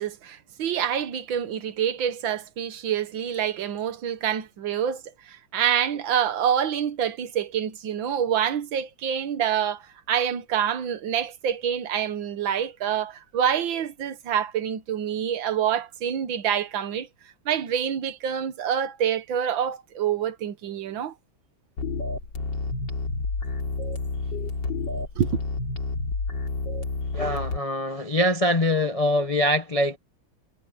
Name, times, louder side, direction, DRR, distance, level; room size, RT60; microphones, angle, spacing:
voice 1, 0.0-17.1 17.5-21.1 25.2-25.4, right 9 dB, 75° right, 1.9 m, -27 dB
sound 1, 21.8-27.6, left 3 dB, 65° left, 3.2 m, -29 dB
voice 2, 27.1-30.0, left 1 dB, 40° left, 0.5 m, -23 dB
omnidirectional pair, 2.2 m